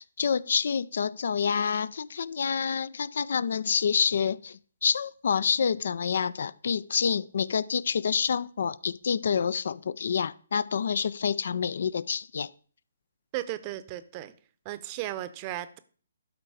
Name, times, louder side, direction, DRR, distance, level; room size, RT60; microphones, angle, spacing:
voice 1, 0.0-12.5, left 6 dB, 60° left, 0.4 m, -28 dB
voice 2, 13.3-14.3 14.6-15.8, right 14 dB, 30° right, 0.7 m, -35 dB
12.0 x 4.6 x 4.8 m
figure-of-eight pair, 135°, 0 cm